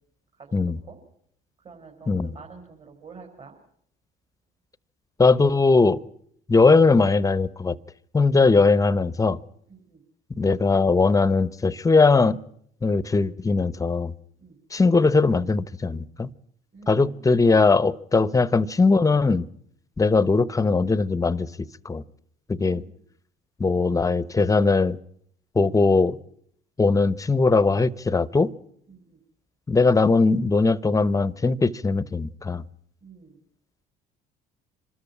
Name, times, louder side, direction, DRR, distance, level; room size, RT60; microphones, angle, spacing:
voice 1, 1.6-3.5 9.7-10.0 14.4-14.6 16.7-17.4 22.6-23.0 28.9-29.2 33.0-33.4, right 5 dB, 40° right, 1 dB, 4.8 m, -47 dB
voice 2, 5.2-6.0 6.5-7.8 8.1-9.4 10.4-12.4 12.8-14.1 14.7-16.3 16.9-19.5 20.0-22.0 22.5-22.8 23.6-25.0 25.5-26.2 26.8-28.5 29.7-32.6, left 3 dB, 20° left, 19 dB, 0.9 m, -20 dB
25.5 x 13.5 x 9.8 m, 0.68 s
supercardioid pair, 75°, 18 cm